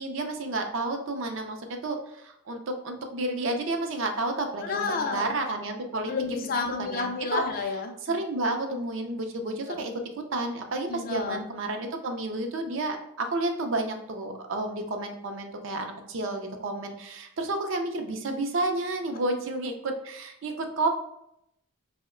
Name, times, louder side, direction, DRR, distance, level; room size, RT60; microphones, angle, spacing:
voice 1, 0.0-1.6 1.8-6.1 6.8-7.4 8.0-9.9 10.3-20.9, right 2 dB, 60° right, 4 dB, 0.4 m, -31 dB
voice 2, 4.6-5.3 6.1-8.2 9.7-9.9 10.9-11.4, left 4 dB, 40° left, 4 dB, 0.3 m, -30 dB
2.9 x 2.1 x 3.6 m, 0.77 s
head